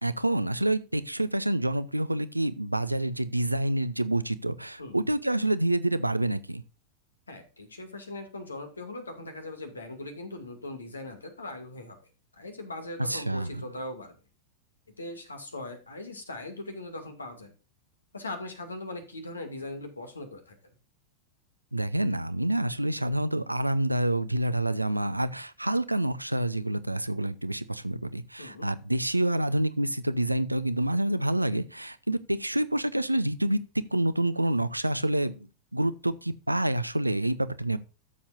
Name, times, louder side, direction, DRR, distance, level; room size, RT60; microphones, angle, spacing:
voice 1, 0.0-6.6 13.1-13.6 21.7-33.6 33.9-37.8, right 1 dB, 85° right, 0.6 m, -27 dB
voice 2, 7.3-12.0 12.3-14.2 15.0-17.5 18.1-20.6 28.4-28.7, left 2 dB, 75° left, 2.2 m, -40 dB
13.5 x 7.2 x 2.6 m
figure-of-eight pair, 90°, 0 cm